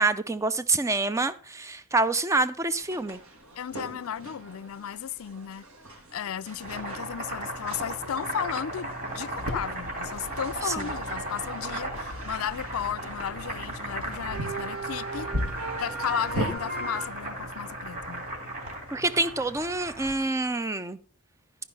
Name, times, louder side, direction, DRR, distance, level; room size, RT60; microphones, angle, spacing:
voice 1, 0.0-3.2 10.6-10.9 18.9-21.0, right 3 dB, 15° right, 0.4 m, -26 dB
sound 1, 2.8-17.1, right 3 dB, 70° right, 1.6 m, -42 dB
voice 2, 3.6-5.7 6.1-15.3 15.8-18.3, left 8 dB, 70° left, 0.4 m, -34 dB
Boiling, 6.4-20.3, right 1 dB, 40° right, 3.1 m, -36 dB
sound 2, 9.4-16.5, equal, 90° right, 2.1 m, -37 dB
12.0 x 5.2 x 5.5 m
head